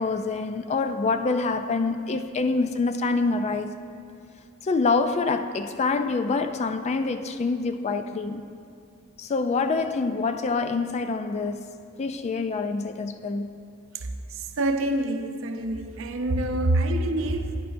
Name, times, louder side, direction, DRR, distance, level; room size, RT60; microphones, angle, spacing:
voice 1, 0.0-3.7 4.6-8.4 9.2-13.5, left 4 dB, 30° left, 0.3 m, -26 dB
voice 2, 14.6-17.6, right 1 dB, 65° right, 0.6 m, -26 dB
11.0 x 9.7 x 2.6 m
head